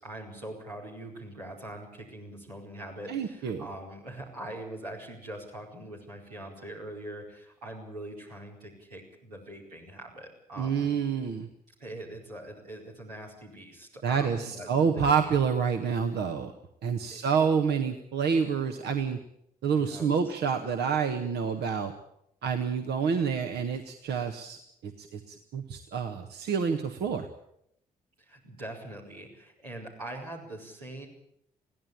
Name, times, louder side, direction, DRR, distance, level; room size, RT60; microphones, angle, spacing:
voice 1, 0.0-11.0 11.8-15.4 17.1-17.4 19.7-20.2 28.2-31.1, right 1 dB, 85° right, -4 dB, 4.6 m, -43 dB
voice 2, 3.1-3.7 10.6-11.5 14.0-16.5 16.8-19.2 19.6-21.9 22.4-24.6 24.8-27.3, right 6 dB, 60° right, 5 dB, 1.5 m, -28 dB
21.5 x 16.0 x 8.9 m, 0.75 s
figure-of-eight pair, 40°, 19 cm